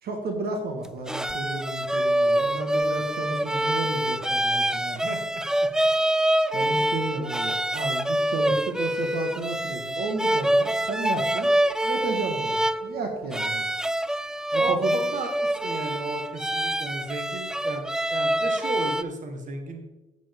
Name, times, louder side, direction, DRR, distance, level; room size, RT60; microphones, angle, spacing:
voice 1, 0.0-5.0 6.5-11.5 11.8-13.6 14.5-15.0, right 3 dB, 65° right, 4 dB, 1.6 m, -32 dB
sound 1, 0.8-19.0, right 1 dB, 5° right, 0.3 m, -26 dB
voice 2, 5.0-5.7 6.6-7.0 14.5-19.8, right 2 dB, 45° right, 5 dB, 1.6 m, -35 dB
8.9 x 8.3 x 3.6 m, 1.0 s
supercardioid pair, 70°, 17 cm